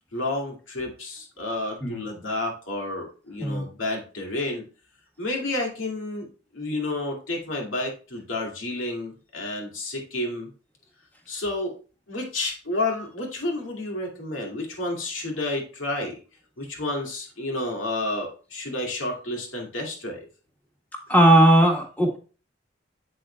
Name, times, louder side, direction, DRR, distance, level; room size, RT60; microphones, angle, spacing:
voice 1, 0.1-4.6 5.2-6.3 6.5-10.5 11.3-11.8 12.1-16.1 16.6-20.3, left 2 dB, 85° left, 0 dB, 2.3 m, -30 dB
voice 2, 21.1-22.2, right 1 dB, 10° left, 1 dB, 1.4 m, -17 dB
8.0 x 7.7 x 2.3 m, 0.36 s
head